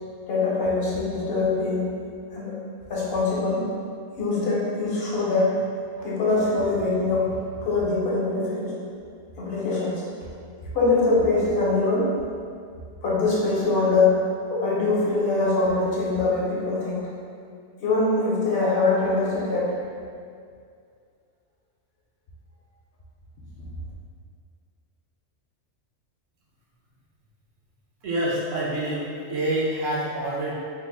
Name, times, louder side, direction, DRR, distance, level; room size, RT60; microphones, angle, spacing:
voice 1, 0.3-1.9 2.3-2.6 2.9-3.7 4.2-5.6 6.0-7.3 7.6-8.8 9.4-10.0 10.7-12.1 13.0-14.2 14.5-17.1 17.8-19.7, left 3 dB, 60° left, -6 dB, 0.8 m, -23 dB
voice 2, 28.0-30.5, right 1 dB, 85° right, -5 dB, 1.1 m, -27 dB
3.3 x 2.1 x 3.7 m, 2.2 s
omnidirectional pair, 1.3 m